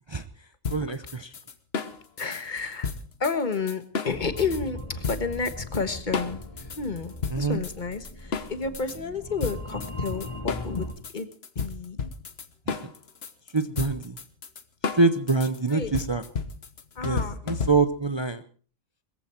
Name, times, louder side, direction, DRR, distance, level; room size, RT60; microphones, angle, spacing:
sound 1, 0.6-4.6 5.0-5.8 6.1-9.0 9.4-18.1, left 5 dB, 50° left, 1.4 m, -33 dB
voice 1, 0.7-1.3 7.3-7.6 12.7-12.8 13.5-14.1 14.9-16.3 17.0-18.4, right 3 dB, 25° right, 11 dB, 0.7 m, -25 dB
voice 2, 2.2-2.9 3.2-10.9 11.1-11.3 11.5-12.1 15.7-15.9 16.9-17.4, left 4 dB, 35° left, 10 dB, 1.5 m, -31 dB
sound 2, 4.1-10.9, left 1 dB, 20° left, 1.6 m, -39 dB
21.0 x 15.0 x 4.5 m, 0.40 s
omnidirectional pair, 1.4 m